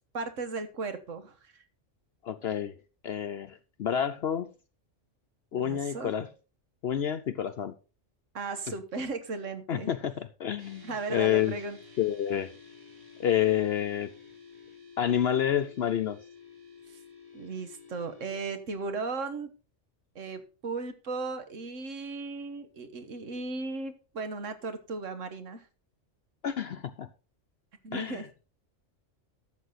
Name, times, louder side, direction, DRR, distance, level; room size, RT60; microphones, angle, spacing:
voice 1, 0.1-1.6 5.5-6.1 8.3-9.9 10.8-11.8 16.9-17.0 17.3-19.5 20.1-25.7 27.8-28.3, right 3 dB, 80° right, 1.7 m, -36 dB
voice 2, 2.2-2.7 3.0-4.5 5.5-6.3 6.8-7.7 9.7-11.5 12.0-12.5 13.2-14.1 15.0-16.2 26.4-27.1 27.9-28.2, left 10 dB, 60° left, 0.8 m, -29 dB
sound 1, 10.6-18.3, left 5 dB, 45° right, 2.5 m, -52 dB
12.5 x 7.4 x 4.1 m
omnidirectional pair, 1.3 m